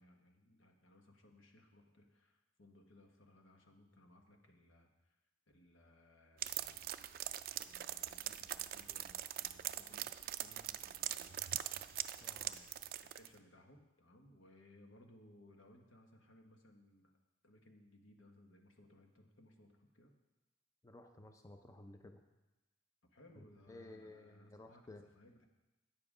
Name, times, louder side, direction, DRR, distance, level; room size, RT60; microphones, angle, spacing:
voice 1, 0.0-5.2 5.5-6.9 7.6-10.1 10.4-11.6 12.1-17.1 17.4-20.1 23.0-25.5, left 1 dB, 85° left, 3 dB, 1.2 m, -64 dB
sound 1, 6.4-13.3, right 12 dB, 50° right, 0.3 m, -42 dB
voice 2, 12.2-12.6 20.8-22.2 23.4-25.0, left 2 dB, 15° left, 6 dB, 0.5 m, -55 dB
9.5 x 7.4 x 4.9 m, 1.0 s
head